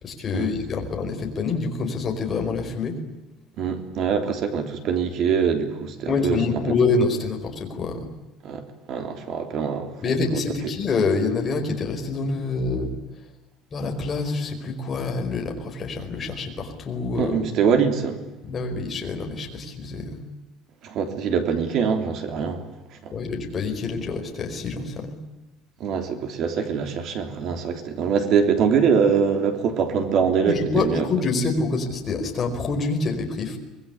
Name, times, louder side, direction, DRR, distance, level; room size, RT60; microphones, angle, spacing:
voice 1, 0.0-3.0 6.1-8.1 10.0-12.9 13.7-17.4 18.4-20.2 23.1-25.2 30.4-33.6, left 4 dB, 20° left, 4.8 m, -26 dB
voice 2, 3.6-6.4 8.4-8.6 8.9-10.4 17.2-18.2 20.8-22.7 23.0-23.1 25.8-31.1, right 6 dB, 40° right, 3.4 m, -23 dB
25.5 x 21.0 x 9.7 m
cardioid pair, 180°, 0 cm